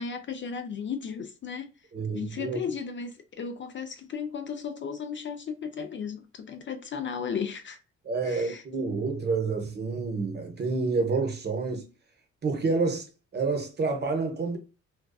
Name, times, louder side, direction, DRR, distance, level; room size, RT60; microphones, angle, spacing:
voice 1, 0.0-1.7 2.1-7.8 8.2-8.6, left 6 dB, 40° left, 0.4 m, -35 dB
voice 2, 1.9-2.6 8.0-11.9 12.4-13.1 13.3-14.6, right 4 dB, 35° right, 0.8 m, -28 dB
2.5 x 2.3 x 2.2 m
cardioid pair, 90°, 30 cm